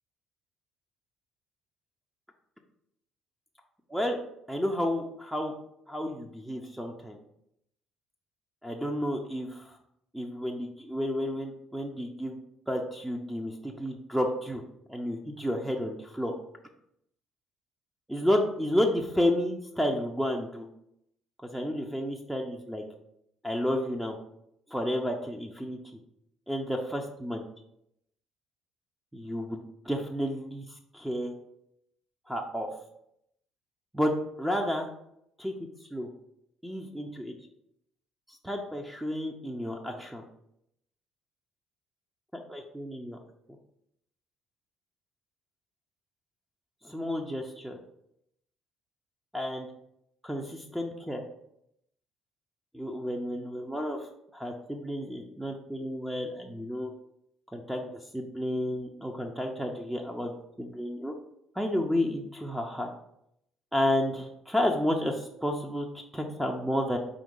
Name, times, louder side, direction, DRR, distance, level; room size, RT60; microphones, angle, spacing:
voice 1, 4.5-5.5 5.9-7.2 8.6-9.7 10.1-12.4 12.7-14.6 14.9-16.3 18.1-20.7 21.5-22.8 23.4-24.2 24.7-25.8 26.5-27.5 29.1-29.6 29.8-30.6 30.9-31.3 32.3-32.7 33.9-34.9 35.4-35.5 35.9-36.1 36.6-37.3 38.4-40.2 42.3-43.2 46.8-47.8 49.3-49.7 50.2-51.2 52.7-54.0 54.3-56.9 57.5-60.3 60.6-61.1 61.6-62.9 63.7-65.9 66.1-67.0, equal, 5° right, 2 dB, 0.6 m, -31 dB
5.0 x 2.8 x 3.7 m, 0.76 s
supercardioid pair, 85°, 0 cm